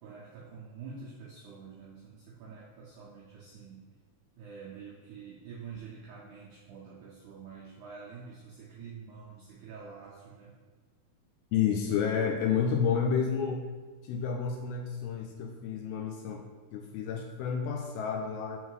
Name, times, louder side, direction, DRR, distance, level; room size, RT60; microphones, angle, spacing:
voice 1, 0.0-3.8 4.4-10.5, right 5 dB, 85° right, -6 dB, 1.7 m, -47 dB
voice 2, 11.5-13.7 14.0-16.4 16.7-18.6, left 7 dB, 85° left, 1 dB, 2.3 m, -30 dB
5.6 x 3.7 x 4.7 m, 1.4 s
omnidirectional pair, 4.6 m